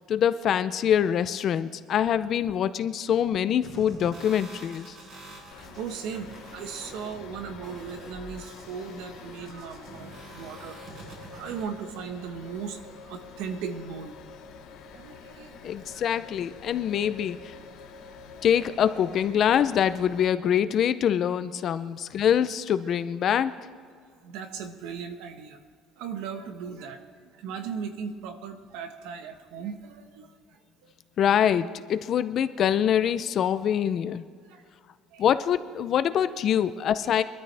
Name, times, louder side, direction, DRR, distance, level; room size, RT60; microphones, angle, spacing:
voice 1, 0.1-5.0 15.6-17.5 18.4-23.5 31.2-34.2 35.2-37.2, left 9 dB, 40° left, 13 dB, 0.5 m, -24 dB
sound 1, 3.6-11.6, right 2 dB, 40° right, 4.0 m, -46 dB
sound 2, 5.5-20.2, left 5 dB, 65° left, 2.1 m, -47 dB
voice 2, 5.5-14.1 14.9-16.0 24.2-25.6 26.0-30.9 34.5-34.6 35.1-35.2 37.0-37.2, right 6 dB, 75° right, 7 dB, 1.3 m, -38 dB
23.0 x 13.0 x 3.4 m, 2.1 s
cardioid pair, 175°, 0 cm